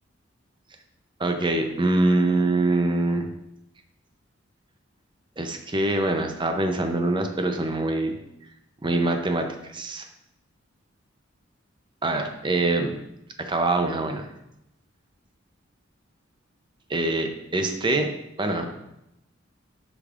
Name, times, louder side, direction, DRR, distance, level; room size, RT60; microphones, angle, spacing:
voice 1, 1.2-3.3 5.4-8.2 8.8-10.1 12.0-12.9 13.4-14.3 16.9-18.1 18.4-18.7, right 2 dB, 25° right, 5 dB, 0.6 m, -24 dB
8.3 x 5.2 x 2.5 m, 0.83 s
head